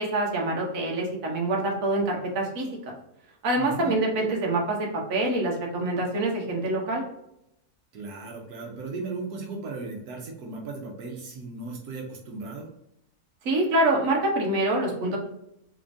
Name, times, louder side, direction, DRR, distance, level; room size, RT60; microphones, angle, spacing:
voice 1, 0.0-2.7 3.4-7.0 13.4-15.2, right 2 dB, 65° right, 0 dB, 1.3 m, -25 dB
voice 2, 3.6-3.9 7.9-12.7, right 3 dB, 80° right, -1 dB, 1.3 m, -36 dB
3.6 x 3.4 x 2.5 m, 0.80 s
omnidirectional pair, 1.6 m